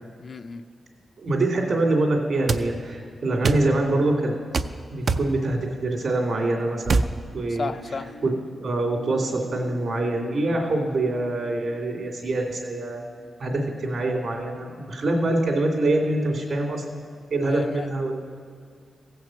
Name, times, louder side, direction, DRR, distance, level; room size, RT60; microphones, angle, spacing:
voice 1, 0.2-0.7 7.5-8.1 17.4-17.9, left 4 dB, 45° left, 9 dB, 0.4 m, -33 dB
voice 2, 1.2-4.4 4.9-7.0 7.3-7.7 8.2-8.3 8.6-13.0 13.4-17.0 17.3-18.1, right 2 dB, 65° right, 0 dB, 2.6 m, -25 dB
sound 1, 2.5-2.7 3.4-3.7 4.5-4.7 5.1-5.3 6.9-7.1, right 4 dB, 50° right, 0.4 m, -22 dB
sound 2, 7.6-13.3, right 1 dB, 75° left, 1.1 m, -46 dB
16.0 x 5.9 x 7.6 m, 2.2 s
wide cardioid pair, 120°, 0 cm